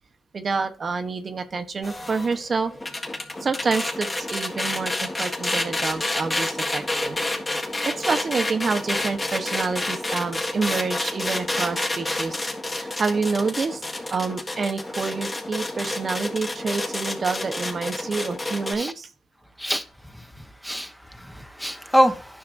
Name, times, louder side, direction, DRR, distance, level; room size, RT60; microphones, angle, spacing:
voice 1, 0.3-2.7 3.4-7.2 7.8-12.4 12.7-13.8 14.1-19.1, right 4 dB, 45° right, 0.9 m, -28 dB
sound 1, 1.8-18.7, left 2 dB, 25° left, 1.6 m, -29 dB
voice 2, 20.1-22.4, equal, 5° left, 0.9 m, -25 dB
9.8 x 5.7 x 2.6 m
supercardioid pair, 60°, 0 cm